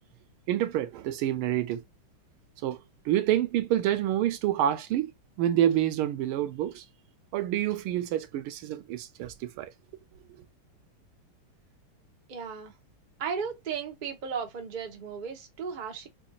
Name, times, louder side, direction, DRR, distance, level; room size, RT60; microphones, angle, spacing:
voice 1, 0.5-1.8 2.6-2.8 3.1-5.1 5.4-6.8 7.3-9.7, right 12 dB, 85° right, 1.5 m, -27 dB
voice 2, 12.3-12.7 13.2-16.1, right 6 dB, 50° right, 0.5 m, -35 dB
5.1 x 2.4 x 2.6 m
omnidirectional pair, 2.3 m